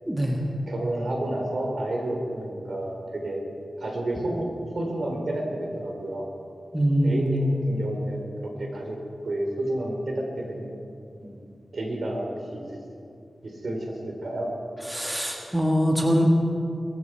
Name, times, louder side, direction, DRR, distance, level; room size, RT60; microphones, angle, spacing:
voice 1, 0.1-0.4 6.7-7.6 14.9-16.2, equal, 10° right, 0 dB, 1.7 m, -23 dB
voice 2, 0.7-3.4 3.8-4.5 4.7-6.3 7.0-8.3 8.6-9.0 9.2-10.7 11.2-12.6 13.4-14.5, right 1 dB, 60° right, 1 dB, 3.3 m, -30 dB
22.0 x 14.0 x 4.6 m, 2.4 s
wide cardioid pair, 95°, 0 cm